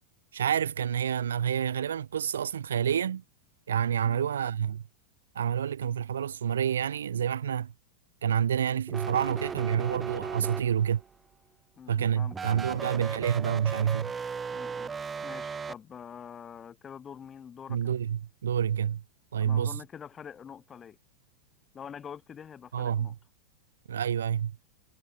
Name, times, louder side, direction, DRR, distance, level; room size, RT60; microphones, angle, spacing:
voice 1, 0.3-3.2 3.7-4.8 5.3-7.7 8.2-11.0 11.9-14.1 17.7-19.0 19.3-19.8 22.7-23.1 23.9-24.5, right 9 dB, 65° right, 0.4 m, -28 dB
sound 1, 8.9-11.1 12.3-15.7, right 5 dB, 15° right, 0.6 m, -36 dB
voice 2, 11.8-12.4 12.7-12.9 14.5-14.9 15.2-18.0 19.4-21.0 21.7-23.1, left 8 dB, 20° left, 5.4 m, -45 dB
figure-of-eight pair, 90°, 0 cm